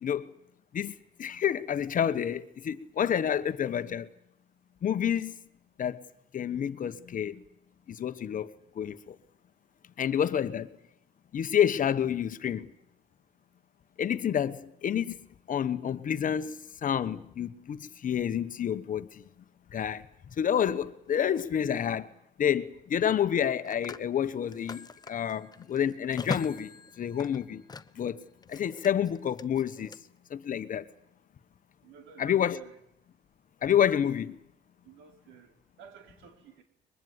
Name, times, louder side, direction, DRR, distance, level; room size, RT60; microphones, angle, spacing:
voice 1, 0.0-0.3 0.7-0.9 1.2-4.1 4.8-5.3 5.8-6.0 6.3-7.4 7.9-8.5 8.7-9.1 10.0-10.7 11.3-12.7 14.0-15.2 15.5-19.2 19.7-20.0 20.4-22.1 22.4-27.6 28.0-28.2 28.5-30.0 30.3-30.9 32.2-32.6 33.6-34.4, left 9 dB, 45° left, 1.2 m, -29 dB
Telephone, 21.1-21.3 23.3-28.1 28.4-30.0, left 4 dB, 20° left, 0.9 m, -41 dB
voice 2, 31.8-32.7 34.8-35.5 35.8-36.6, right 6 dB, 90° right, 4.4 m, -52 dB
23.0 x 21.5 x 9.6 m
cardioid pair, 115°, 19 cm